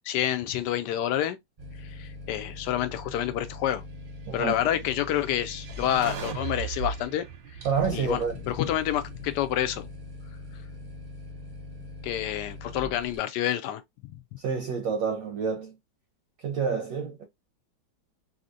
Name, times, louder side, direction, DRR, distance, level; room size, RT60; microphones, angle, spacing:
voice 1, 0.0-1.4 1.8-3.8 4.3-7.3 7.9-9.9 12.0-14.1, left 11 dB, 75° left, 1.1 m, -28 dB
sound 1, 1.6-13.2, left 2 dB, 40° right, 0.7 m, -42 dB
sound 2, 4.9-9.3, right 6 dB, 90° right, 1.4 m, -38 dB
voice 2, 7.6-8.4 14.4-15.7 16.4-17.2, right 6 dB, 65° right, 0.9 m, -28 dB
3.4 x 2.7 x 2.5 m
omnidirectional pair, 1.9 m